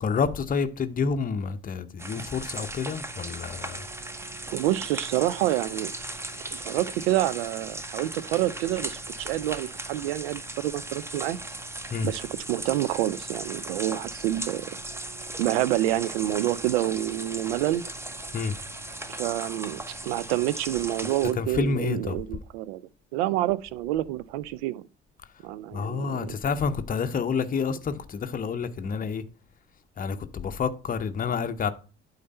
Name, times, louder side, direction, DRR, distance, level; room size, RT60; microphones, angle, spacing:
voice 1, 0.0-3.8 11.9-12.1 18.3-18.5 21.4-22.2 25.7-29.2 30.0-31.7, left 5 dB, 25° left, 0.7 m, -28 dB
sound 1, 2.0-21.3, right 2 dB, 5° right, 0.8 m, -37 dB
voice 2, 4.5-5.9 6.5-11.4 12.0-14.7 15.4-17.8 19.1-22.8 23.1-24.8 25.4-26.4, right 15 dB, 60° right, 0.5 m, -28 dB
8.5 x 4.0 x 5.4 m
figure-of-eight pair, 55°, 35 cm